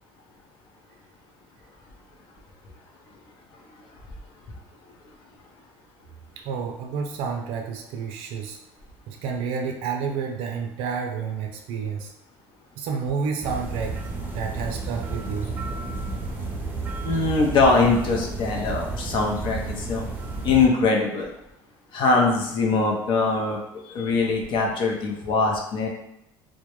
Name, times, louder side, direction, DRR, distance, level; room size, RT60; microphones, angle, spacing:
voice 1, 6.4-8.6 9.1-12.1 12.8-14.0 14.3-15.5, right 6 dB, 75° right, 3 dB, 0.4 m, -30 dB
sound 1, 13.4-20.7, right 3 dB, 20° right, 0.5 m, -32 dB
voice 2, 17.0-20.0 20.4-21.3 21.9-23.6 23.9-25.9, left 3 dB, 55° left, 0 dB, 0.6 m, -22 dB
2.1 x 2.1 x 2.9 m, 0.82 s
supercardioid pair, 95°, 10 cm